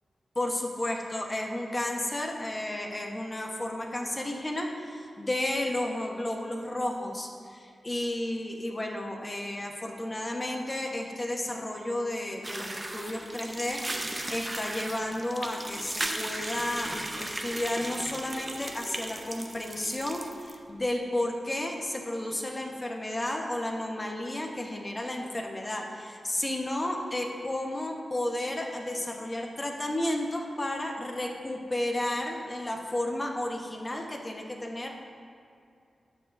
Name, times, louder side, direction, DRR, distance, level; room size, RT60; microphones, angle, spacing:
voice 1, 0.3-34.9, left 1 dB, 30° left, 1 dB, 1.2 m, -32 dB
sound 1, 12.4-20.6, right 1 dB, 25° right, 0.8 m, -36 dB
11.5 x 7.1 x 2.7 m, 2.4 s
cardioid pair, 45°, 0 cm